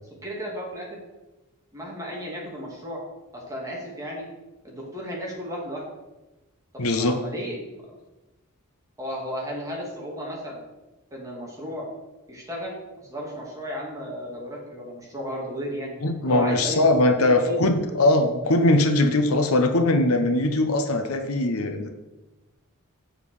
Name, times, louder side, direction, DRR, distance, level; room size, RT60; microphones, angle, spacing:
voice 1, 0.2-1.0 1.7-3.0 3.3-4.3 4.6-5.9 6.7-7.9 9.0-10.6 11.1-11.9 12.3-15.9 16.3-17.6 17.8-18.0, equal, 15° right, -3 dB, 2.5 m, -34 dB
voice 2, 6.8-7.2 16.0-21.9, left 2 dB, 70° left, 7 dB, 0.9 m, -21 dB
7.5 x 7.4 x 4.9 m, 1.1 s
head